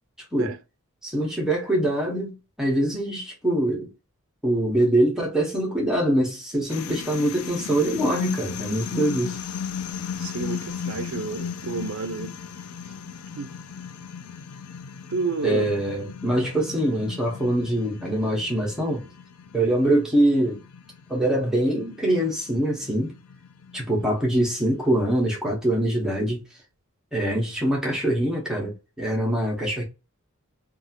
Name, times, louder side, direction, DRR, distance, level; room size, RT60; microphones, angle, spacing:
voice 1, 1.0-3.9 4.4-9.4 15.4-19.1 19.5-20.6 21.1-23.1 23.7-26.4 27.1-29.8, right 1 dB, 5° right, 0.8 m, -24 dB
sound 1, 6.7-25.2, left 7 dB, 85° left, 0.4 m, -37 dB
voice 2, 10.2-12.3 13.4-13.5 15.1-15.7, right 4 dB, 60° right, 0.4 m, -30 dB
2.7 x 2.4 x 2.7 m
head